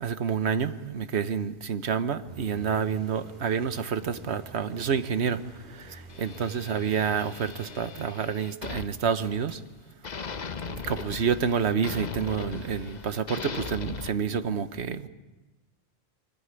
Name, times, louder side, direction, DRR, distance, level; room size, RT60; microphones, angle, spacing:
voice 1, 0.0-5.4 5.7-9.6 10.6-15.1, right 7 dB, 90° right, 11 dB, 1.3 m, -28 dB
sound 1, 2.3-8.7, equal, 40° right, 5.3 m, -49 dB
sound 2, 6.1-9.7 10.0-14.1, left 5 dB, 45° left, 0.9 m, -39 dB
24.0 x 14.0 x 9.7 m, 1.2 s
omnidirectional pair, 1.1 m